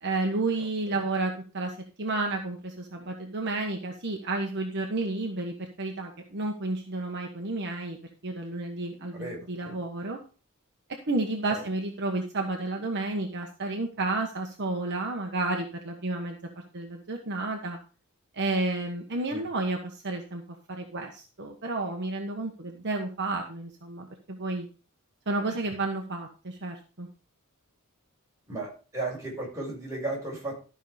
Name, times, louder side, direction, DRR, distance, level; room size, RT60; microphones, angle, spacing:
voice 1, 0.0-8.0 8.2-10.2 11.1-16.4 16.7-17.8 18.3-20.4 20.7-24.7 25.3-27.1, right 2 dB, 50° right, 2 dB, 1.3 m, -31 dB
voice 2, 9.1-9.8 11.4-11.6 19.3-19.5 28.5-30.6, right 2 dB, 15° right, -4 dB, 5.8 m, -35 dB
13.0 x 5.6 x 5.0 m, 0.36 s
head